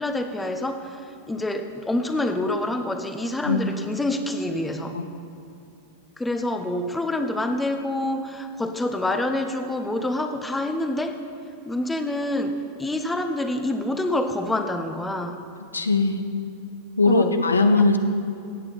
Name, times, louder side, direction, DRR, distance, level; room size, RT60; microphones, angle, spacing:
voice 1, 0.0-5.0 6.2-11.2 11.6-15.4 17.1-17.7, left 1 dB, 10° left, 7 dB, 0.8 m, -27 dB
voice 2, 15.7-16.2 17.0-18.0, left 3 dB, 75° left, 8 dB, 0.6 m, -19 dB
16.0 x 8.8 x 4.1 m, 2.5 s
figure-of-eight pair, 90°, 0 cm